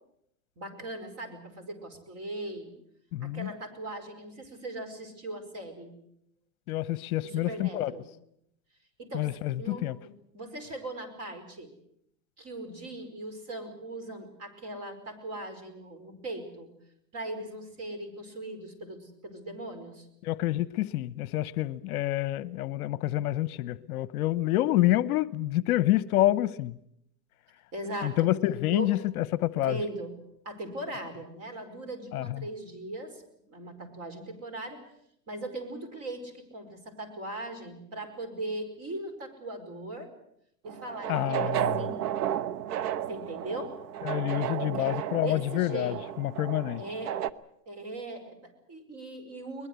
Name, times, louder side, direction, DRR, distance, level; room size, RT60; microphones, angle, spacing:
voice 1, 0.6-2.7 3.2-5.9 7.2-8.1 9.0-9.3 9.6-11.7 12.4-16.7 17.1-20.1 27.7-28.3 28.7-28.9 29.5-30.1 30.4-34.8 35.3-40.1 40.6-42.0 43.1-43.7 44.6-46.0 46.8-47.2 47.7-49.7, right 1 dB, 30° right, 7 dB, 5.2 m, -39 dB
voice 2, 3.1-3.5 6.7-7.9 9.1-9.9 20.2-26.8 28.0-29.8 32.1-32.4 41.1-41.7 44.0-46.8, left 15 dB, 60° left, 17 dB, 0.9 m, -28 dB
sound 1, 40.7-47.3, right 11 dB, 70° right, 1.2 m, -33 dB
22.0 x 21.0 x 8.1 m, 0.75 s
supercardioid pair, 140°, 49 cm